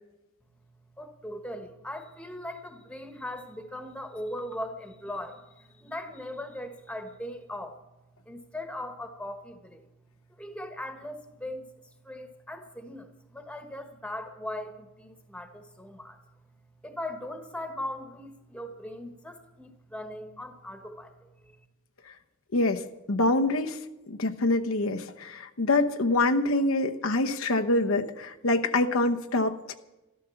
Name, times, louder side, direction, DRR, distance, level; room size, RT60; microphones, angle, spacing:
voice 1, 1.0-7.8 8.2-9.9 10.4-11.7 12.0-16.2 16.8-21.6, left 1 dB, 5° left, 6 dB, 1.3 m, -39 dB
voice 2, 22.5-22.8 23.1-23.8 24.1-29.7, left 2 dB, 70° left, 5 dB, 0.9 m, -25 dB
13.0 x 13.0 x 7.1 m, 1.0 s
head